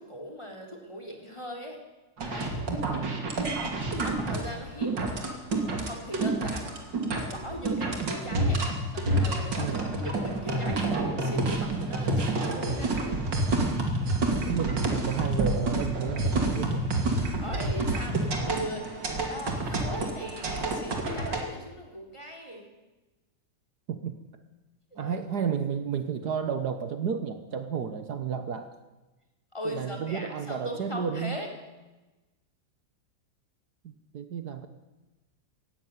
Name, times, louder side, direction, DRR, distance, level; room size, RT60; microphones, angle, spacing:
voice 1, 0.0-1.8 2.3-2.7 4.0-5.0 5.6-6.8 7.1-8.6 8.9-13.2 17.4-18.9 19.3-22.7 24.9-25.2 29.5-31.5, equal, 15° left, 2 dB, 3.5 m, -39 dB
sound 1, 2.2-21.4, right 2 dB, 80° right, 3.3 m, -28 dB
voice 2, 2.8-3.3 9.5-9.9 14.4-16.8 23.9-24.2 25.0-28.7 29.6-31.4 33.8-34.7, right 7 dB, 65° right, 9 dB, 1.6 m, -32 dB
16.5 x 16.5 x 9.5 m, 1.1 s
omnidirectional pair, 1.9 m